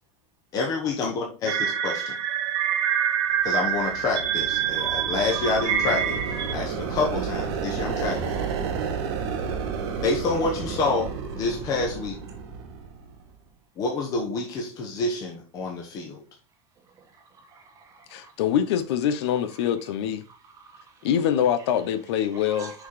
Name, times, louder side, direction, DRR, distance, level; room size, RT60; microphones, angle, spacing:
voice 1, 0.5-2.2 3.4-6.2 6.5-8.3 10.0-12.2 13.8-16.2, left 3 dB, 25° left, 0.9 m, -28 dB
sound 1, 1.5-6.5, right 9 dB, 70° right, 1.1 m, -26 dB
sound 2, 3.5-13.3, right 6 dB, 90° right, 2.0 m, -32 dB
voice 2, 16.8-18.3 19.6-19.7 20.2-21.1 21.6-21.7 22.3-22.9, right 4 dB, 25° right, 1.1 m, -48 dB
voice 3, 18.1-20.2 21.0-22.7, left 9 dB, 75° left, 0.7 m, -24 dB
6.1 x 3.9 x 4.7 m
supercardioid pair, 180°, 14 cm